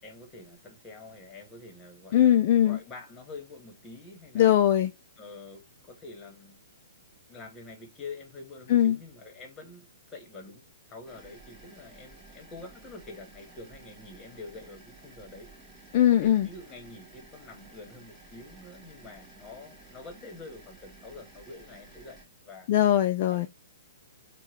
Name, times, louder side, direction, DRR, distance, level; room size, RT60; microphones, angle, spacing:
voice 1, 0.0-4.5 5.2-6.6 7.3-15.7 16.1-22.2 22.4-22.7 23.3-23.5, left 3 dB, 20° left, 1.4 m, -46 dB
voice 2, 2.1-2.8 4.3-4.9 8.7-9.0 15.9-16.5 22.7-23.5, left 11 dB, 45° left, 0.4 m, -21 dB
sound 1, 11.1-22.3, right 3 dB, 10° right, 1.8 m, -53 dB
4.5 x 2.3 x 3.0 m
figure-of-eight pair, 120°, 0 cm